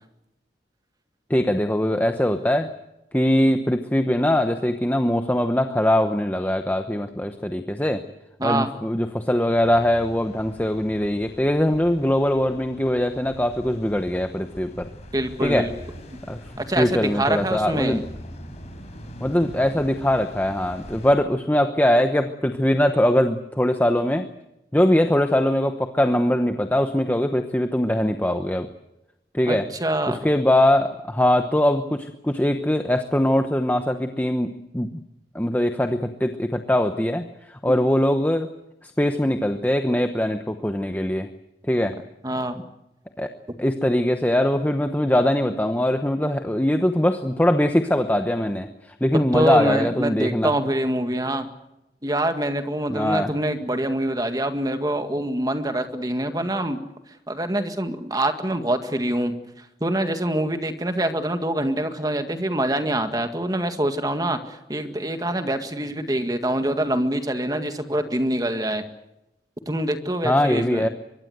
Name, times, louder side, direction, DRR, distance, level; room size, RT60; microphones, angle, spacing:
voice 1, 1.3-2.7 3.1-8.0 8.4-14.9 15.4-15.7 16.3-16.4 16.8-18.0 19.2-24.3 24.7-28.7 29.3-29.7 30.1-34.9 35.3-37.3 37.6-38.5 38.8-41.3 41.7-42.0 43.2-43.3 43.6-48.7 49.0-50.5 52.9-53.3 70.2-70.9, left 1 dB, 10° left, 7 dB, 0.9 m, -21 dB
voice 2, 8.4-8.8 15.1-15.7 16.6-18.0 29.5-30.3 42.2-42.6 49.3-51.5 52.0-56.8 57.3-59.4 59.8-68.8 69.7-70.9, right 1 dB, 20° right, 7 dB, 1.9 m, -25 dB
sound 1, 9.5-21.1, equal, 40° left, 5.7 m, -42 dB
24.0 x 22.5 x 8.0 m, 0.91 s
head